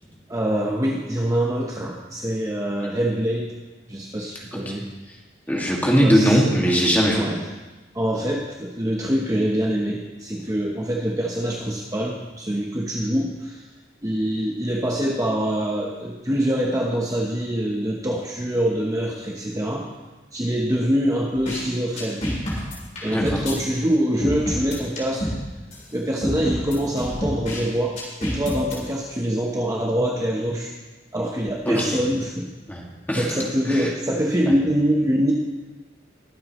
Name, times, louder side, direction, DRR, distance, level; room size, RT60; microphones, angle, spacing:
voice 1, 0.3-3.6 3.9-4.9 6.0-6.4 7.1-7.4 7.9-13.6 14.0-19.9 20.3-22.2 23.0-25.3 25.9-30.7 31.1-32.5 33.1-35.3, equal, 20° right, -1 dB, 1.0 m, -24 dB
voice 2, 5.5-7.3 23.0-23.3 31.7-32.0 32.7-33.3 33.7-33.9, equal, 10° left, -3 dB, 2.1 m, -20 dB
sound 1, 21.5-21.6 22.0-23.5 24.2-25.4 25.7-25.8 26.2-27.6 28.0-28.7, equal, 40° left, 3.8 m, -28 dB
21.5 x 8.2 x 3.1 m, 1.2 s
head